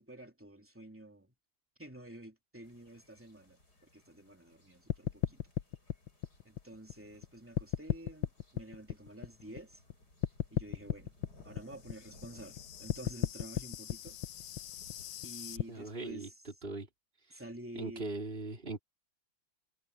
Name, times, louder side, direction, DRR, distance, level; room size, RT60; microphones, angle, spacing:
voice 1, 0.0-1.3 1.8-3.6 3.9-5.4 6.4-9.8 10.5-11.1 11.4-14.2 15.2-16.3 17.3-18.1, right 1 dB, 5° right, 2.8 m, -50 dB
sound 1, 2.6-16.1, left 1 dB, 50° left, 8.5 m, -62 dB
sound 2, 4.9-7.3 7.6-9.9 10.2-15.6, left 13 dB, 75° left, 1.6 m, -36 dB
voice 2, 15.7-16.9 17.3-17.4 17.7-18.8, right 2 dB, 25° right, 3.8 m, -40 dB
omnidirectional pair, 2.1 m